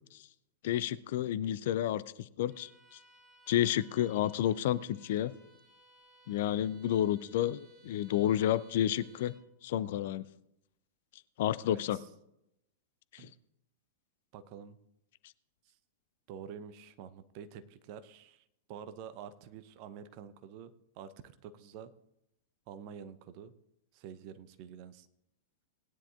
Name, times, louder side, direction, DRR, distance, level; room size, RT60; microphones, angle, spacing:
voice 1, 0.6-2.7 3.5-5.3 6.3-9.3 9.6-10.2 11.4-12.0 13.1-13.3, left 11 dB, 50° left, 16 dB, 0.5 m, -30 dB
Bowed string instrument, 2.5-9.5, right 3 dB, 15° right, 3.0 m, -62 dB
voice 2, 11.6-12.1 13.2-13.3 14.3-14.8 16.3-21.9 22.7-23.5 23.9-25.1, right 8 dB, 40° right, 11 dB, 0.8 m, -48 dB
19.0 x 9.9 x 2.5 m, 0.82 s
figure-of-eight pair, 95°, 0 cm